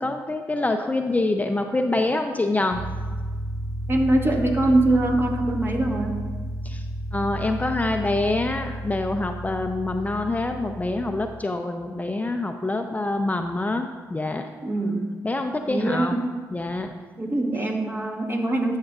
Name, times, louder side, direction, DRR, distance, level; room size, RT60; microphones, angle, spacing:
voice 1, 0.0-2.8 6.6-6.8 7.1-14.5 15.2-16.2 16.5-16.9, left 2 dB, 20° left, 5 dB, 0.5 m, -26 dB
sound 1, 2.7-11.4, right 1 dB, 50° right, 0.7 m, -32 dB
voice 2, 3.9-6.2 14.6-15.1 15.7-16.3 17.2-18.8, right 2 dB, 35° right, 2 dB, 1.5 m, -23 dB
12.5 x 6.4 x 2.4 m, 1.5 s
supercardioid pair, 55°, 7 cm